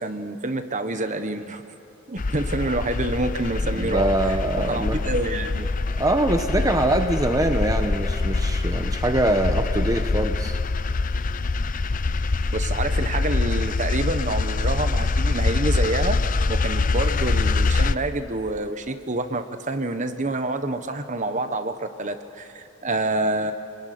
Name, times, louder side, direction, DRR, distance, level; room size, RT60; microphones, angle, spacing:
voice 1, 0.0-1.6 2.1-4.4 4.6-5.7 12.5-16.2 16.5-23.5, right 2 dB, 35° right, 8 dB, 1.2 m, -27 dB
sound 1, 2.2-17.9, left 3 dB, 40° left, 0.5 m, -24 dB
voice 2, 3.7-5.0 5.9-10.6, right 1 dB, 15° right, 5 dB, 1.0 m, -23 dB
27.5 x 21.0 x 9.4 m, 2.6 s
head